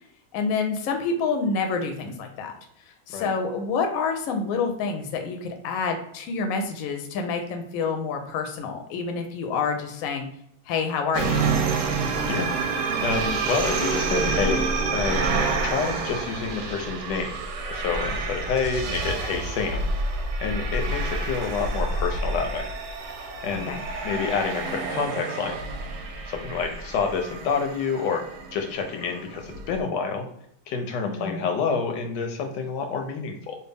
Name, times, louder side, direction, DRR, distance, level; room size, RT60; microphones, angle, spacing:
voice 1, 0.3-2.5 3.1-10.3 10.7-11.5 23.5-23.8 31.0-31.5, left 5 dB, 65° left, 4 dB, 0.9 m, -28 dB
sound 1, 11.1-29.8, right 3 dB, 70° right, 1.0 m, -28 dB
voice 2, 13.0-14.6 14.9-15.2 15.6-17.4 17.7-19.8 20.4-22.6 23.4-23.7 24.0-25.6 26.2-30.3 30.7-33.6, left 5 dB, 85° left, 4 dB, 1.2 m, -28 dB
3.2 x 2.3 x 3.4 m, 0.70 s
omnidirectional pair, 1.8 m